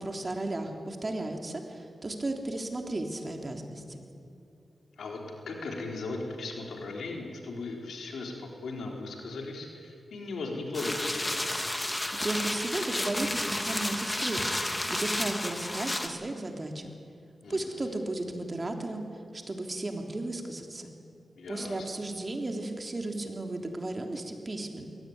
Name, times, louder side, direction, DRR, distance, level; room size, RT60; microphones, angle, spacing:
voice 1, 0.0-4.0 12.2-14.6 14.9-16.9 17.5-19.0 19.3-20.9 21.5-24.9, right 2 dB, 35° right, 3 dB, 3.4 m, -34 dB
voice 2, 5.5-11.4 17.4-17.9 21.4-21.9, left 3 dB, 85° left, 1 dB, 3.9 m, -37 dB
sound 1, 10.7-16.1, left 1 dB, 20° left, 2.3 m, -31 dB
22.0 x 17.5 x 9.6 m, 2.6 s
cardioid pair, 55°, 0 cm